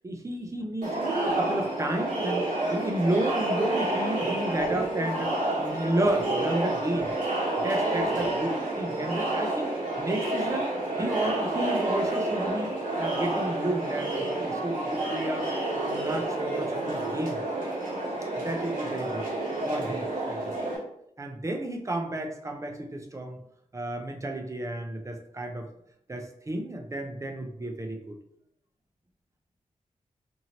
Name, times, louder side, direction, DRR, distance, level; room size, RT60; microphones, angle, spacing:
voice 1, 0.0-7.1 7.6-10.7 11.0-15.5 15.8-17.4 18.4-19.3 19.7-20.5 21.2-23.4 23.7-25.7 26.1-28.2, right 1 dB, 20° right, 3 dB, 0.5 m, -32 dB
Crowd, 0.8-20.8, right 2 dB, 90° right, 1.2 m, -29 dB
2.9 x 2.6 x 2.8 m, 0.75 s
wide cardioid pair, 90°, 14 cm